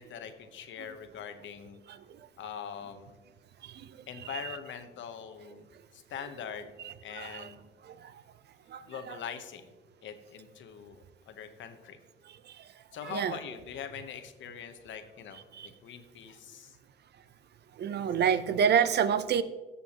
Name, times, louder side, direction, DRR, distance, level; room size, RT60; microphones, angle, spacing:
voice 1, 0.0-1.8 2.4-3.2 4.1-5.7 5.9-6.7 7.0-7.6 8.8-9.7 10.0-12.0 12.9-16.8, left 8 dB, 70° left, 9 dB, 0.9 m, -43 dB
voice 2, 4.2-4.6 6.8-7.5 7.8-8.1 8.7-9.2 12.5-12.6 13.0-13.4 15.5-15.7 17.8-19.4, right 7 dB, 55° right, 14 dB, 0.6 m, -29 dB
15.0 x 6.9 x 2.9 m, 1.3 s
cardioid pair, 90°, 20 cm